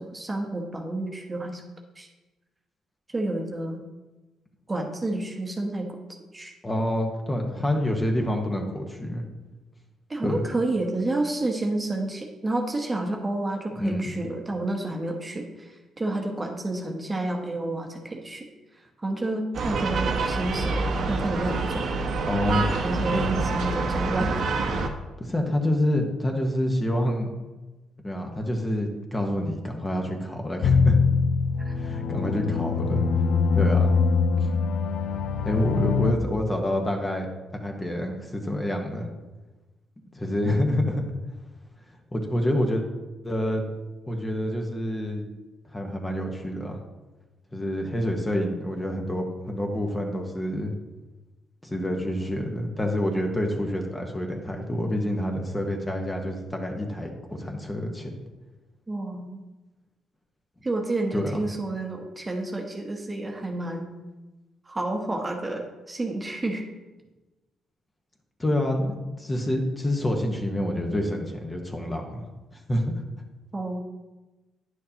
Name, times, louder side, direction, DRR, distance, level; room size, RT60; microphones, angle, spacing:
voice 1, 0.0-1.6 2.0-2.1 3.1-3.8 4.7-5.9 6.3-6.5 10.1-18.5 19.0-20.8 21.1-21.9 22.5-24.3 31.6-31.7 58.9-59.4 60.6-63.9 64.7-66.7 73.5-73.8, right 2 dB, 20° right, 2 dB, 1.0 m, -30 dB
voice 2, 6.6-9.2 10.2-10.4 13.8-14.1 19.7-19.8 22.3-22.6 23.1-23.4 25.2-27.3 28.0-31.0 31.7-33.0 33.6-33.9 35.4-37.3 37.5-39.1 40.1-41.0 42.1-42.8 43.2-43.7 44.1-45.2 45.7-46.8 47.5-50.7 51.6-58.1 61.1-61.4 68.4-72.2 72.7-72.9, left 1 dB, 20° left, 2 dB, 1.1 m, -27 dB
sound 1, 19.5-24.9, right 3 dB, 65° right, 0.9 m, -27 dB
sound 2, 30.6-36.1, left 5 dB, 75° left, 0.5 m, -23 dB
9.8 x 6.5 x 2.9 m, 1.1 s
cardioid pair, 90°, 0 cm